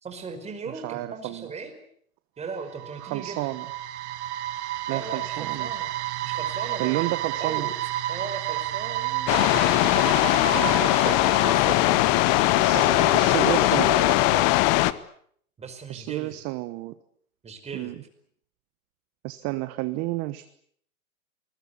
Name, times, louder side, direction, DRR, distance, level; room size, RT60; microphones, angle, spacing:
voice 1, 0.0-1.7 2.4-3.5 4.9-5.9 6.2-7.0 7.4-9.5 10.5-12.1 12.7-14.6 15.6-16.4 17.4-17.9, right 5 dB, 15° right, 6 dB, 5.2 m, -37 dB
voice 2, 0.7-1.5 3.0-3.7 4.9-5.7 6.8-7.7 12.6-13.9 15.9-16.9 17.7-17.9 19.2-20.4, right 19 dB, 30° right, 13 dB, 1.2 m, -31 dB
sound 1, 2.5-12.6, right 14 dB, 50° right, 1.7 m, -31 dB
sound 2, 9.3-14.9, left 18 dB, 35° left, 1.2 m, -20 dB
28.0 x 21.0 x 8.4 m, 0.64 s
hypercardioid pair, 130°, 44 cm